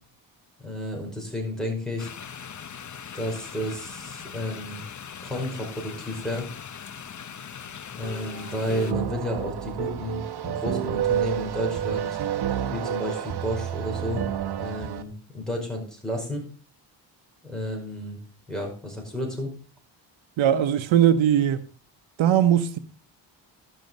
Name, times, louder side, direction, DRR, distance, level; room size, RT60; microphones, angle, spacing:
voice 1, 0.6-2.1 3.1-4.8 5.2-6.5 7.9-12.2 12.7-14.2 14.6-16.4 17.4-18.2 18.5-19.5, left 1 dB, ahead, 5.2 m, -31 dB
sound 1, 2.0-8.9, left 7 dB, 40° left, 0.8 m, -40 dB
sound 2, 8.0-15.0, right 10 dB, 55° right, 1.1 m, -29 dB
voice 2, 20.4-21.7 22.2-22.8, right 10 dB, 80° right, 0.9 m, -20 dB
12.5 x 6.4 x 5.3 m
cardioid pair, 95°, 46 cm